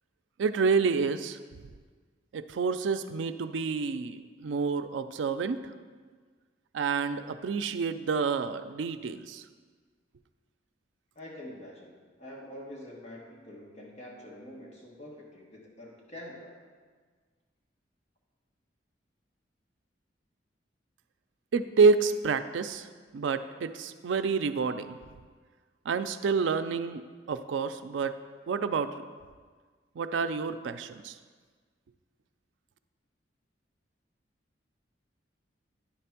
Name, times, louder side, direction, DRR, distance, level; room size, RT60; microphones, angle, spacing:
voice 1, 0.4-1.4 2.3-5.7 6.7-9.4 21.5-22.9 23.1-25.0 25.9-28.1 28.5-29.0 30.0-31.2, right 5 dB, 85° right, 10 dB, 0.4 m, -28 dB
voice 2, 11.1-11.9 12.2-16.6, left 1 dB, 35° left, -3 dB, 1.2 m, -45 dB
9.8 x 3.4 x 5.8 m, 1.5 s
head